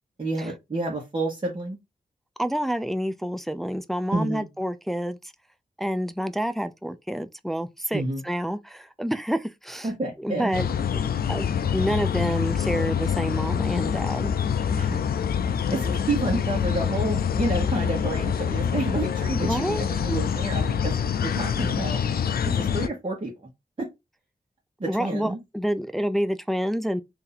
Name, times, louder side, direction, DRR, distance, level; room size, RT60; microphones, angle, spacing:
voice 1, 0.2-1.8 4.1-4.5 7.9-8.2 9.8-10.5 14.8-15.0 15.7-22.0 22.4-23.5 23.8-23.9 24.8-25.4, right 2 dB, 35° right, 1.2 m, -29 dB
voice 2, 2.4-5.2 5.8-9.9 10.2-10.7 10.9-14.4 19.4-19.8 24.9-27.0, equal, ahead, 0.4 m, -28 dB
sound 1, 10.5-22.9, left 7 dB, 80° left, 0.4 m, -26 dB
2.8 x 2.6 x 4.0 m
cardioid pair, 60°, 15 cm